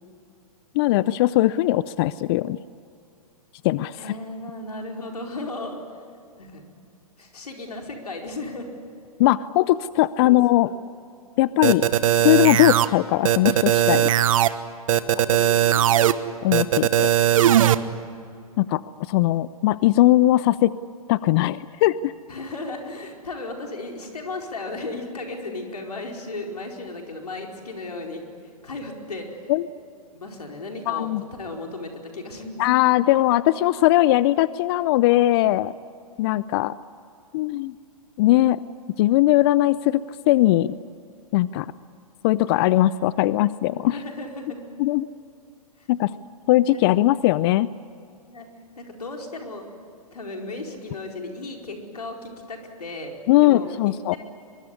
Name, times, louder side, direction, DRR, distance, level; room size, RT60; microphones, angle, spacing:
voice 1, 0.7-2.6 3.6-4.1 9.2-10.7 11.4-11.9 12.2-14.1 15.1-15.2 16.4-17.1 18.6-18.8 19.1-20.7 21.1-22.1 29.5-29.7 30.9-31.2 32.6-35.7 36.2-36.7 37.3-37.7 38.2-38.6 39.0-40.8 41.3-41.7 42.2-44.0 44.8-45.1 45.9-46.1 46.5-47.7 53.3-54.2, left 16 dB, 40° left, 18 dB, 0.5 m, -19 dB
voice 2, 4.0-6.0 6.4-6.6 7.2-8.7 10.2-10.4 10.6-10.8 14.9-15.9 22.3-29.3 30.2-31.1 31.4-32.6 43.9-44.7 45.8-45.9 48.3-48.5 48.8-49.7 50.1-53.1 53.4-54.2, left 2 dB, 85° left, 2 dB, 4.7 m, -35 dB
sound 1, 11.6-12.9 13.2-14.5 14.9-16.1 16.5-17.7, right 11 dB, 60° right, 1.2 m, -18 dB
23.5 x 23.0 x 9.8 m, 2.4 s
hypercardioid pair, 120°, 19 cm